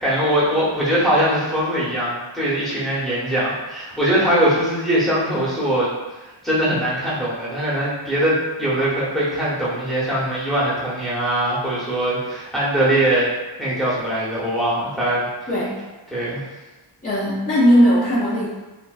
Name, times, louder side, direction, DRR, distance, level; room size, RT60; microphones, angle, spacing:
voice 1, 0.0-5.9 6.2-13.3 13.5-15.2 16.1-16.4, right 1 dB, ahead, -9 dB, 0.9 m, -21 dB
voice 2, 17.0-18.5, equal, 15° left, -9 dB, 0.5 m, -17 dB
2.5 x 2.2 x 2.3 m, 1.1 s
wide cardioid pair, 70°, 48 cm